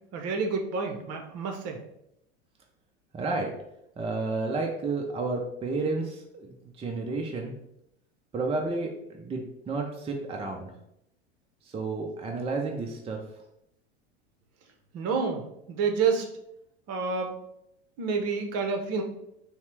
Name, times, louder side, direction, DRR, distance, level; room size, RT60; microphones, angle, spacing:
voice 1, 0.1-1.8 14.9-16.3 16.9-17.3 18.0-19.0, right 5 dB, 45° right, 4 dB, 0.9 m, -28 dB
voice 2, 3.1-3.5 4.0-7.5 8.3-10.7 11.6-13.2, right 3 dB, 15° right, 1 dB, 0.6 m, -31 dB
5.5 x 2.2 x 3.3 m, 0.79 s
hypercardioid pair, 95°, 34 cm